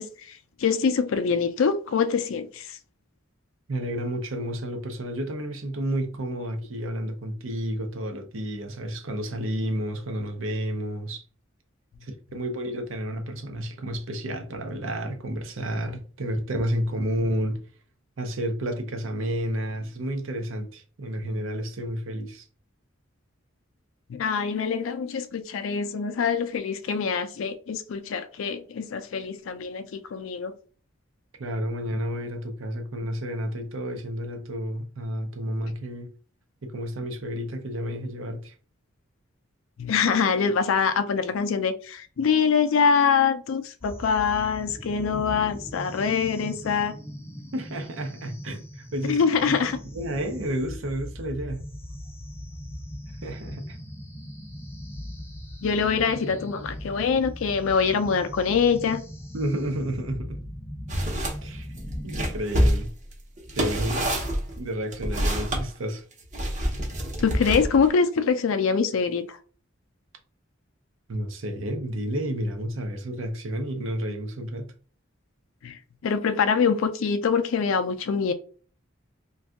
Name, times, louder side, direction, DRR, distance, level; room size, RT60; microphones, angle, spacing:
voice 1, 0.0-2.8 24.1-30.5 39.8-46.9 49.0-49.8 55.6-59.0 67.2-69.4 75.6-78.3, left 6 dB, 80° left, 0.4 m, -24 dB
voice 2, 3.7-11.2 12.0-17.6 18.2-22.4 31.4-36.1 36.6-38.5 47.5-49.6 49.9-51.6 53.2-53.8 59.3-60.4 61.4-61.7 62.0-62.9 63.6-64.2 64.6-66.0 71.1-74.7, right 1 dB, 75° right, 0.7 m, -31 dB
sound 1, 43.8-62.4, equal, 10° left, 0.4 m, -40 dB
sound 2, 60.9-61.4 61.8-65.6 66.3-67.9, equal, 35° right, 0.8 m, -26 dB
2.6 x 2.3 x 3.4 m
head